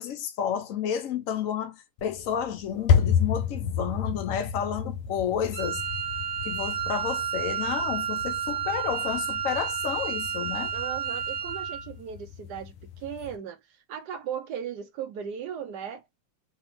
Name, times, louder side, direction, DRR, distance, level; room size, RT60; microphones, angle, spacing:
voice 1, 0.0-5.8 6.4-10.7, left 8 dB, 75° left, 0.7 m, -31 dB
sound 1, 2.0-13.4, left 7 dB, 90° left, 1.7 m, -31 dB
Wind instrument woodwind instrument, 5.5-11.9, right 8 dB, 60° right, 0.5 m, -31 dB
voice 2, 10.7-16.2, right 8 dB, 80° right, 0.9 m, -37 dB
5.2 x 3.0 x 3.0 m
omnidirectional pair, 2.3 m